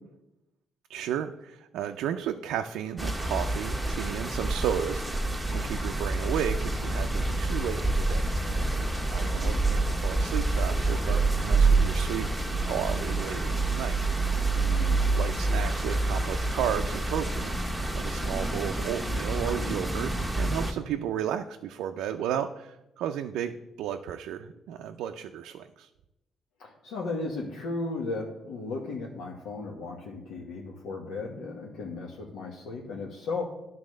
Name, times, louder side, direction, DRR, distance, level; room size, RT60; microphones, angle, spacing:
voice 1, 0.9-8.3 9.1-14.0 15.1-25.9, right 9 dB, 90° right, 5 dB, 0.4 m, -33 dB
sound 1, 3.0-20.7, right 2 dB, ahead, 1.2 m, -27 dB
voice 2, 9.2-9.6 14.5-15.1 26.6-33.4, left 3 dB, 85° left, -1 dB, 1.2 m, -36 dB
10.5 x 4.1 x 6.3 m, 0.91 s
cardioid pair, 90°, 0 cm